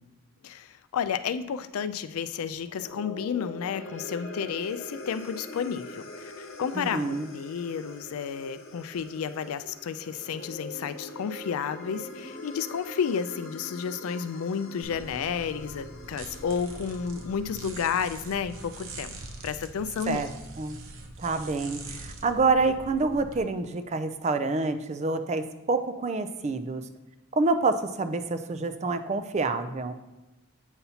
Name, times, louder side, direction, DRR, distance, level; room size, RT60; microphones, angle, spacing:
voice 1, 0.4-19.1 19.4-20.2, left 7 dB, 85° left, 13 dB, 0.4 m, -31 dB
sound 1, 2.6-19.1, left 2 dB, 60° left, 1.0 m, -43 dB
voice 2, 6.7-7.3 20.1-20.3 20.6-20.8 21.2-26.8 27.4-29.9, right 3 dB, 30° right, 10 dB, 0.4 m, -27 dB
sound 2, 14.8-23.4, right 3 dB, 70° right, 0.8 m, -43 dB
8.0 x 5.5 x 2.8 m, 1.1 s
head